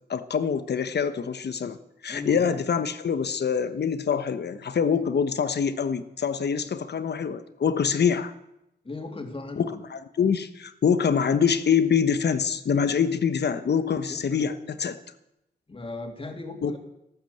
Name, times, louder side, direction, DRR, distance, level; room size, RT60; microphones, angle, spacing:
voice 1, 0.1-1.8 2.0-8.3 9.6-15.0 16.6-16.8, left 7 dB, 75° left, 12 dB, 1.2 m, -25 dB
voice 2, 2.1-2.6 8.8-9.8 14.1-14.5 15.7-16.8, left 2 dB, 30° left, 4 dB, 2.8 m, -37 dB
14.0 x 13.0 x 8.0 m, 0.86 s
wide cardioid pair, 85°, 17 cm